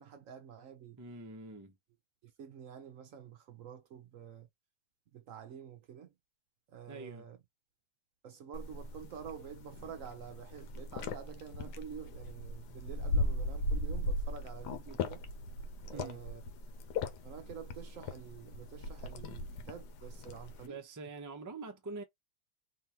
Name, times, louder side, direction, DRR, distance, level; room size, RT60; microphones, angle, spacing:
voice 1, 0.0-1.0 2.2-4.5 5.1-6.1 6.7-7.4 8.2-15.2 15.9-16.4 17.2-20.8, right 8 dB, 65° right, 0.9 m, -48 dB
voice 2, 1.0-1.8 6.9-7.3 15.9-16.2 20.6-22.0, right 3 dB, 20° right, 0.5 m, -45 dB
sound 1, 8.5-20.7, left 2 dB, 90° left, 1.4 m, -38 dB
3.5 x 3.1 x 2.8 m
omnidirectional pair, 1.7 m